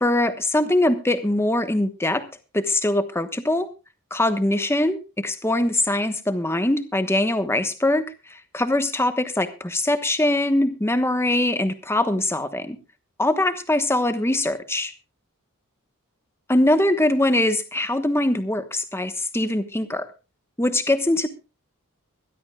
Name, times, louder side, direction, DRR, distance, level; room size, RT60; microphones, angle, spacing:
voice 1, 0.0-2.2 2.5-3.7 4.1-8.0 8.3-12.8 13.2-14.9 16.5-20.1 20.6-21.3, left 1 dB, 10° left, 9 dB, 1.2 m, -22 dB
24.0 x 12.5 x 2.3 m, 0.30 s
head